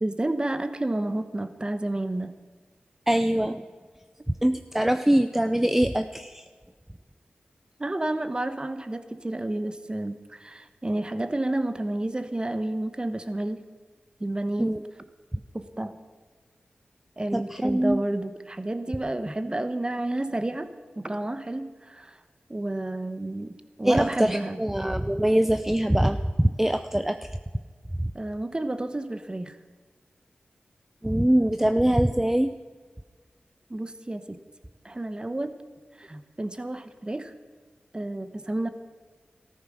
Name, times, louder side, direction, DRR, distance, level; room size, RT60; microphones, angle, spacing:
voice 1, 0.0-2.4 7.8-13.6 14.2-14.8 15.5-16.0 17.2-20.7 21.0-22.2 22.5-24.6 28.1-29.6 33.7-34.4 34.8-35.5 36.0-37.3 37.9-38.7, right 1 dB, 25° right, 10 dB, 1.1 m, -30 dB
voice 2, 3.1-3.6 4.4-6.4 14.6-14.9 17.3-18.0 23.8-27.4 28.0-28.1 31.0-32.5, right 1 dB, 10° right, 9 dB, 0.5 m, -23 dB
14.0 x 13.5 x 6.3 m, 1.5 s
cardioid pair, 55°, 3 cm